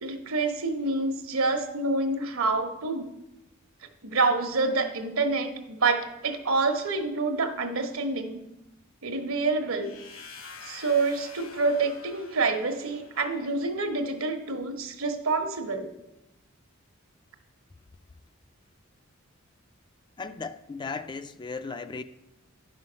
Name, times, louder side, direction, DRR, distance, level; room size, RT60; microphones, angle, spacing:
voice 1, 0.0-3.1 4.0-8.4 9.0-9.9 10.6-15.9, right 3 dB, 80° right, 1.2 m, -27 dB
sound 1, 9.8-13.7, left 4 dB, 65° left, 1.3 m, -47 dB
voice 2, 20.2-22.0, left 4 dB, 20° left, 0.3 m, -36 dB
10.5 x 5.7 x 6.2 m
head